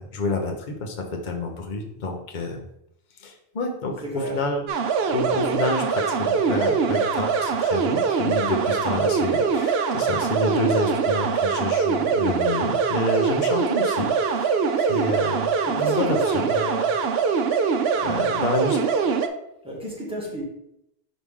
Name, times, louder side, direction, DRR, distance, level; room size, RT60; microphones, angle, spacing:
voice 1, 0.0-2.6 3.2-4.6 5.1-14.5 14.8-15.5 15.8-16.5 18.0-19.1, left 2 dB, 45° left, 3 dB, 1.0 m, -28 dB
voice 2, 4.0-4.4 15.7-17.0 19.6-20.4, right 1 dB, 5° right, -5 dB, 1.9 m, -32 dB
sound 1, 4.7-19.3, right 5 dB, 70° right, 0.8 m, -23 dB
6.3 x 4.8 x 3.6 m, 0.80 s
omnidirectional pair, 1.1 m